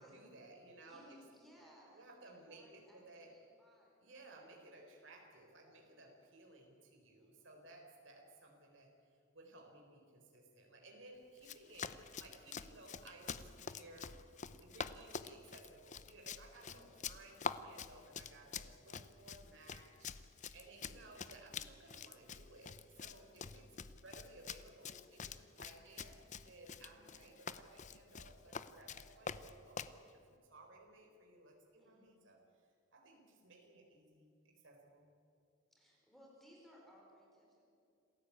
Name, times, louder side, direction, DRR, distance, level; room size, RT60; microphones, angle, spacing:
voice 1, 0.0-1.2 1.9-3.3 4.0-8.9 9.3-14.1 14.6-23.7 23.9-32.4 32.9-35.1, right 2 dB, 65° right, 1 dB, 4.3 m, -59 dB
voice 2, 0.8-4.4 7.2-7.6 16.6-17.1 20.6-21.1 23.1-23.6 25.6-26.0 26.8-27.2 31.8-32.2 35.7-37.6, equal, ahead, -2 dB, 5.2 m, -64 dB
Run, 11.4-30.0, left 6 dB, 35° left, 0.7 m, -47 dB
27.5 x 15.0 x 8.6 m, 2.5 s
head